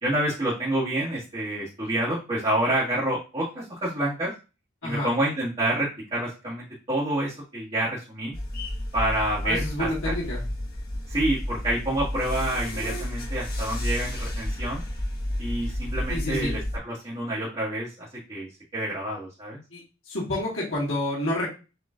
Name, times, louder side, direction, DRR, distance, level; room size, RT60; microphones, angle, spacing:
voice 1, 0.0-4.3 4.8-8.3 8.9-10.1 11.1-14.8 15.4-19.6, right 1 dB, 25° right, -9 dB, 1.9 m, -28 dB
sound 1, 8.3-16.8, left 1 dB, 45° left, 1.5 m, -31 dB
voice 2, 9.4-10.4 16.1-16.5 19.7-19.8 20.1-21.5, left 1 dB, 65° left, -6 dB, 2.0 m, -29 dB
6.7 x 3.0 x 2.5 m, 0.30 s
head